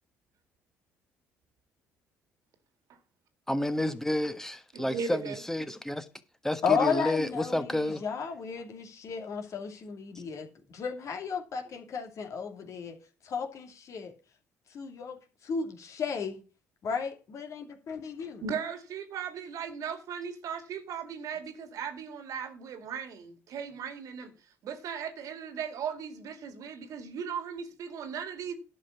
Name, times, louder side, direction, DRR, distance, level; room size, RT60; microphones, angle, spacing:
voice 1, 3.5-6.1 6.4-8.0, left 1 dB, 5° left, 1.4 m, -30 dB
voice 2, 4.7-5.4 18.4-24.3 24.6-28.5, right 7 dB, 60° right, 2.1 m, -37 dB
voice 3, 6.6-13.0 13.2-14.1 14.7-16.4 16.8-18.4, left 6 dB, 55° left, 2.3 m, -34 dB
11.5 x 5.4 x 7.2 m
hypercardioid pair, 55°, 6 cm